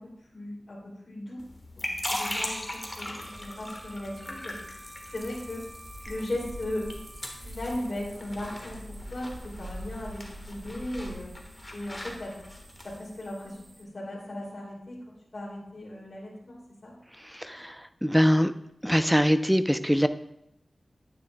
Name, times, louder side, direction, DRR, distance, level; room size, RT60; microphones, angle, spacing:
voice 1, 0.0-1.4 1.8-4.6 5.1-5.6 6.0-6.9 7.3-11.3 11.7-12.3 12.8-16.9, left 1 dB, 55° left, -5 dB, 2.9 m, -37 dB
sound 1, 1.4-13.0, left 1 dB, 20° left, 1.5 m, -39 dB
Bowed string instrument, 2.0-7.5, right 1 dB, 75° right, 3.0 m, -50 dB
sound 2, 3.2-13.8, right 1 dB, 45° right, 1.1 m, -46 dB
voice 2, 17.2-18.5 18.8-20.1, equal, ahead, 11 dB, 0.5 m, -23 dB
9.7 x 9.3 x 2.3 m, 0.80 s
cardioid pair, 55°, 0 cm